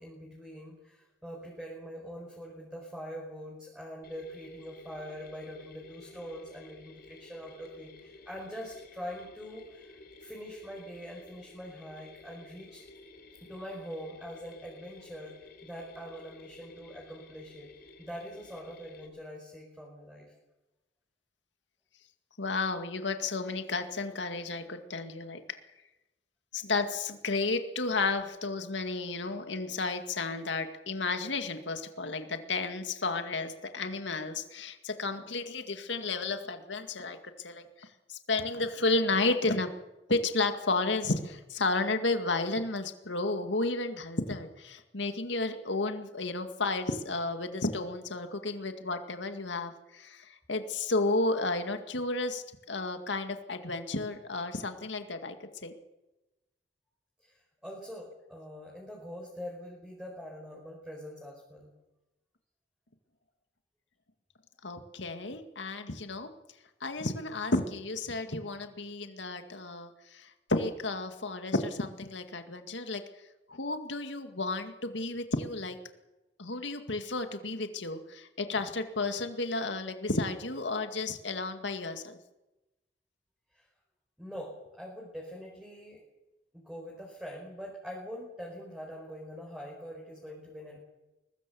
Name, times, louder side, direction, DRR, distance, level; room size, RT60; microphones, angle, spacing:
voice 1, 0.0-12.8 13.4-15.3 15.6-17.7 18.0-20.3 57.2-61.7 83.5-83.7 84.2-86.0 86.5-90.8, equal, 5° right, -2 dB, 5.0 m, -44 dB
Mechanisms, 4.0-19.1, left 3 dB, 55° left, 3.7 m, -54 dB
voice 2, 22.4-25.6 26.5-39.7 40.1-55.7 64.6-66.3 66.8-73.0 73.5-75.8 76.4-82.2, left 3 dB, 80° left, 7 dB, 2.1 m, -32 dB
23.0 x 20.0 x 7.1 m, 1.0 s
head